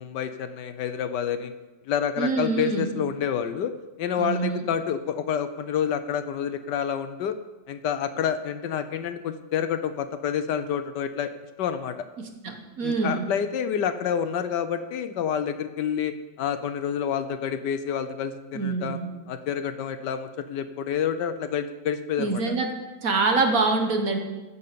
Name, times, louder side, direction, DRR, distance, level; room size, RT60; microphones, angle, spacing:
voice 1, 0.0-1.5 1.9-3.7 4.0-7.3 7.7-11.3 11.6-12.0 12.8-19.0 19.3-22.5, left 8 dB, 70° left, 10 dB, 1.3 m, -28 dB
voice 2, 2.2-2.9 4.2-4.6 12.2-13.3 18.5-19.1 22.2-22.7 23.0-24.2, right 3 dB, 50° right, 4 dB, 1.5 m, -25 dB
15.0 x 5.6 x 6.9 m, 1.1 s
omnidirectional pair, 2.0 m